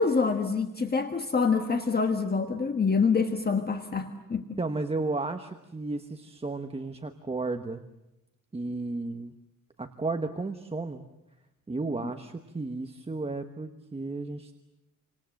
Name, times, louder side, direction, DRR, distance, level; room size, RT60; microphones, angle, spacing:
voice 1, 0.0-4.6, left 5 dB, 25° left, 6 dB, 1.4 m, -26 dB
voice 2, 4.6-7.8 8.5-9.3 9.8-11.1 11.7-14.5, right 3 dB, 15° right, 6 dB, 1.1 m, -33 dB
29.0 x 26.0 x 7.7 m, 0.93 s
wide cardioid pair, 175°, 35 cm